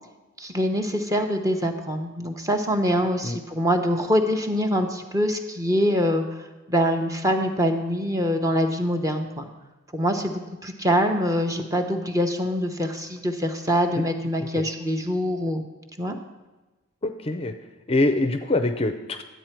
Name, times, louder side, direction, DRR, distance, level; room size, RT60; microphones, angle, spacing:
voice 1, 0.4-6.2 6.7-9.5 9.9-15.6 16.0-16.2, equal, 15° right, 5 dB, 0.8 m, -24 dB
voice 2, 17.0-17.5 17.9-19.2, left 2 dB, 25° left, 8 dB, 0.5 m, -24 dB
11.0 x 8.1 x 4.5 m, 1.1 s
head